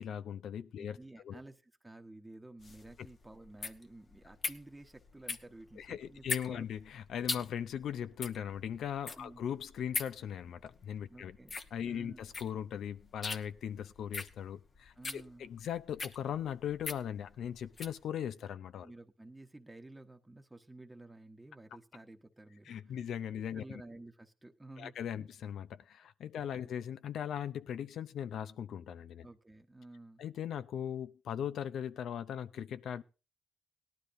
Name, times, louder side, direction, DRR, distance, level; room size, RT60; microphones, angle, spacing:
voice 1, 0.0-1.0 1.2-1.4 5.8-11.4 11.7-18.9 22.7-23.8 24.8-29.3 30.2-33.0, left 9 dB, 70° left, 0.6 m, -39 dB
voice 2, 0.8-6.6 9.1-9.4 11.1-11.6 11.9-12.2 14.9-15.5 18.8-23.0 23.5-25.0 26.3-26.5 29.2-30.2, right 2 dB, 15° right, 1.1 m, -53 dB
sound 1, 2.6-18.0, left 4 dB, 45° left, 1.1 m, -42 dB
18.0 x 12.0 x 2.7 m
supercardioid pair, 65°, 0 cm